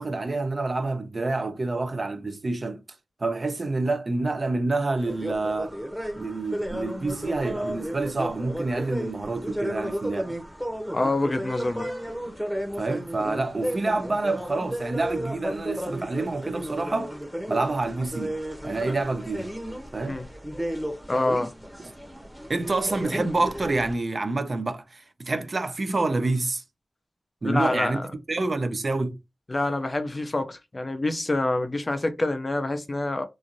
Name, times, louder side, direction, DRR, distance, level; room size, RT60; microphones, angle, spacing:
voice 1, 0.0-2.8 3.2-5.8 6.2-10.4 12.8-17.1 17.5-19.5 19.9-20.2 22.5-26.6 27.4-28.0 28.3-29.2, right 3 dB, 45° right, 0.5 m, -27 dB
sound 1, 5.0-23.9, equal, ahead, 0.8 m, -34 dB
voice 2, 10.9-11.9 20.1-20.3 21.1-21.5 27.4-28.1 29.5-33.2, left 2 dB, 30° left, 0.4 m, -26 dB
3.0 x 2.5 x 2.5 m
wide cardioid pair, 95°, 0 cm